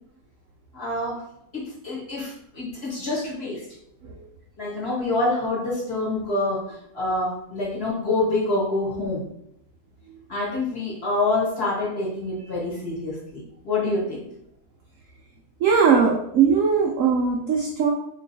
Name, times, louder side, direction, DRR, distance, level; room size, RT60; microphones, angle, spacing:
voice 1, 0.7-1.2 1.5-3.6 4.6-6.7 6.9-9.2 10.3-14.3, left 2 dB, 40° left, -5 dB, 1.1 m, -26 dB
voice 2, 15.6-17.9, right 6 dB, 80° right, 0 dB, 0.7 m, -19 dB
3.0 x 3.0 x 4.0 m, 0.76 s
omnidirectional pair, 2.0 m